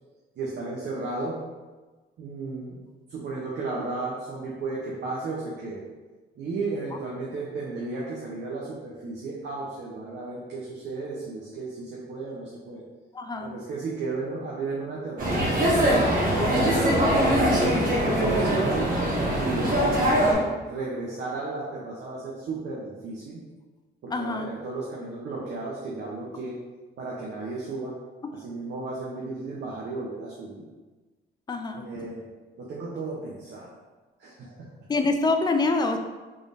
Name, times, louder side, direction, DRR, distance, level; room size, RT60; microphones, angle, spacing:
voice 1, 0.4-1.4 2.2-2.8 3.1-5.8 6.4-12.8 13.4-15.9 16.6-17.6 17.9-23.4 24.0-26.6 27.0-27.9 28.3-30.6 31.7-32.2 32.6-33.7 34.2-34.7, right 3 dB, 60° right, -5 dB, 0.8 m, -34 dB
voice 2, 13.1-13.5 24.1-24.5 31.5-31.9 34.9-36.0, left 3 dB, 20° left, 6 dB, 0.4 m, -25 dB
sound 1, 15.2-20.3, equal, 45° right, 1.3 m, -22 dB
3.6 x 3.4 x 2.6 m, 1.3 s
cardioid pair, 90°, 20 cm